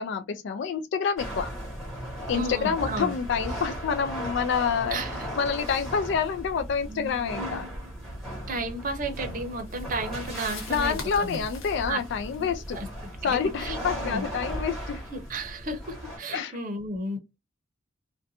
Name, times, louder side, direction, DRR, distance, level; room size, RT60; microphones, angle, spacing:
voice 1, 0.0-1.5 2.3-5.0 5.4-7.6 10.7-12.8 13.2-15.0 16.3-16.6, left 6 dB, 60° left, 0.3 m, -27 dB
sound 1, 1.2-16.2, equal, ahead, 1.1 m, -37 dB
voice 2, 2.3-3.1 4.9-5.3 8.5-11.4 11.9-12.0 12.4-12.5 12.7-12.9 13.2-14.2 15.1-17.2, right 2 dB, 45° right, 0.7 m, -33 dB
sound 2, 9.1-14.0, left 4 dB, 90° left, 1.0 m, -46 dB
2.5 x 2.2 x 2.6 m
head